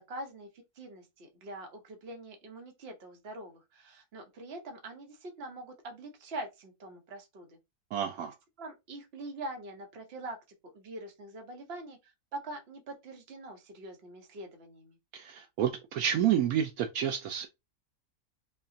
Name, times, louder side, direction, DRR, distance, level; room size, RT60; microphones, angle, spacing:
voice 1, 0.0-7.6 8.6-10.4 10.6-15.0, right 2 dB, 45° right, 1.1 m, -44 dB
voice 2, 7.9-8.3 15.1-17.5, right 9 dB, 75° right, 1.0 m, -29 dB
5.6 x 2.2 x 2.6 m
omnidirectional pair, 1.6 m